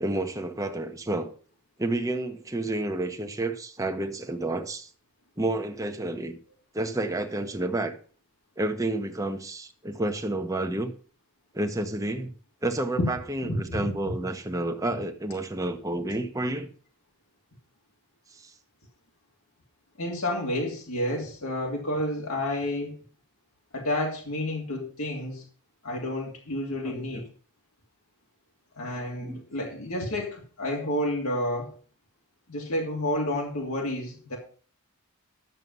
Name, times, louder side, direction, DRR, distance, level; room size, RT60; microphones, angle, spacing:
voice 1, 0.0-1.3 1.8-4.9 5.4-6.4 6.7-8.0 8.6-10.9 11.5-12.3 12.6-16.7 18.3-18.5 26.8-27.2 29.2-29.4, right 2 dB, 15° right, 1.0 m, -30 dB
voice 2, 13.4-13.9 20.0-22.9 23.7-25.4 25.8-27.3 28.8-31.7 32.5-34.4, left 1 dB, 75° left, 2.8 m, -30 dB
11.0 x 7.5 x 5.4 m
head